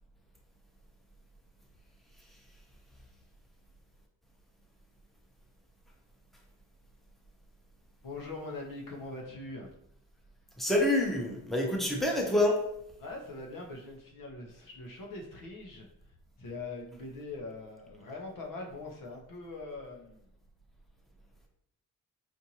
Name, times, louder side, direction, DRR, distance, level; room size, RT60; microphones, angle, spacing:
voice 1, 8.0-9.7 13.0-20.3, left 2 dB, 85° left, 0 dB, 0.9 m, -42 dB
voice 2, 10.6-12.6, left 1 dB, ahead, 0 dB, 0.8 m, -27 dB
4.4 x 2.6 x 2.9 m, 0.77 s
cardioid pair, 105°, 32 cm